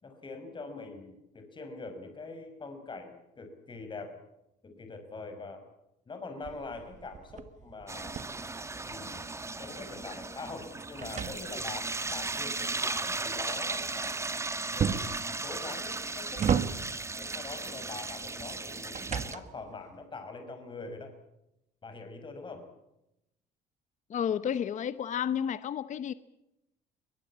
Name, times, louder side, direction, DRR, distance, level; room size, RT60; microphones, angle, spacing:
voice 1, 0.0-4.1 4.6-5.6 6.1-8.2 8.8-9.2 9.6-14.2 14.7-15.1 15.4-16.5 17.2-21.1 21.8-22.7, left 3 dB, 30° left, 5.7 m, -43 dB
sound 1, 6.4-9.3 9.7-12.0 14.8-15.3 15.9-17.1 18.4-19.7, right 7 dB, 45° right, 1.6 m, -34 dB
sound 2, 7.9-19.3, right 3 dB, 15° right, 1.7 m, -36 dB
voice 2, 24.1-26.1, left 8 dB, 45° left, 0.9 m, -31 dB
22.5 x 20.5 x 8.7 m
cardioid pair, 110°, 17 cm